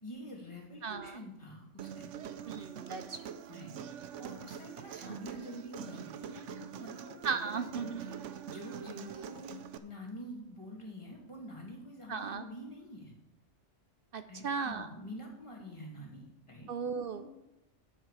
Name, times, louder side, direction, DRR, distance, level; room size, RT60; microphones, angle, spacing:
voice 1, 0.0-2.3 3.5-3.8 4.2-7.1 7.4-9.6 9.8-13.1 14.3-16.7 17.1-17.2, equal, 25° left, -2 dB, 2.2 m, -46 dB
voice 2, 0.8-1.2 2.5-3.4 5.1-5.2 7.2-7.9 12.1-12.5 14.1-14.9 16.7-17.2, right 5 dB, 60° right, 10 dB, 0.7 m, -36 dB
Human voice, 1.8-9.8, right 8 dB, 80° right, 1.0 m, -44 dB
9.9 x 7.7 x 4.8 m, 0.88 s
omnidirectional pair, 1.2 m